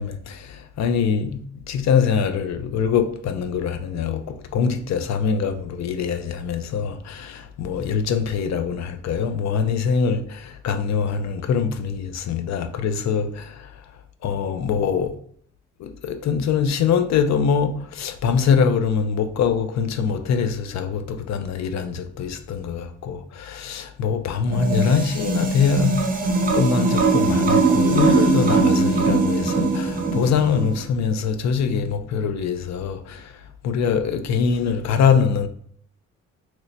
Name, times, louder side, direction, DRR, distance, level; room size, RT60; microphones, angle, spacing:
voice 1, 0.0-13.8 14.2-15.1 15.8-35.5, left 6 dB, 65° left, 0.5 m, -23 dB
sound 1, 24.5-30.8, right 3 dB, 30° right, 0.6 m, -20 dB
3.0 x 2.1 x 4.0 m
cardioid pair, 90°, 30 cm